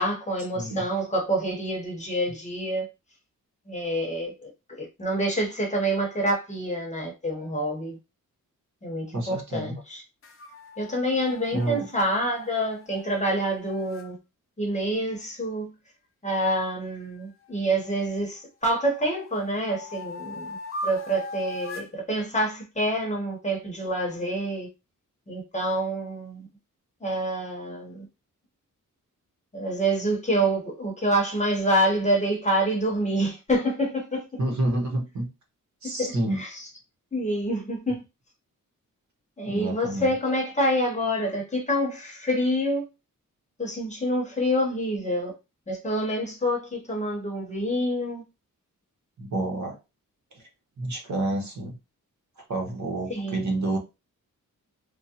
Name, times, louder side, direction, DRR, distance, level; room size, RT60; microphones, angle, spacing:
voice 1, 0.0-2.9 3.7-8.0 8.8-10.0 10.8-14.2 14.6-15.7 16.2-20.6 20.8-24.7 25.3-26.5 27.0-28.1 29.5-34.3 36.0-36.5 37.1-38.0 39.4-42.8 43.6-45.3 45.7-48.2 53.1-53.5, right 1 dB, 20° left, 0.8 m, -27 dB
voice 2, 9.1-9.8 11.5-11.9 34.4-35.3 35.8-36.4 39.4-40.1 49.2-49.8 50.3-50.4 50.8-51.8 52.5-53.8, right 1 dB, 60° right, 1.0 m, -29 dB
sound 1, 10.2-14.1 17.0-18.3 18.8-22.0, left 2 dB, 40° left, 0.5 m, -40 dB
3.5 x 2.0 x 2.8 m
wide cardioid pair, 150°, 32 cm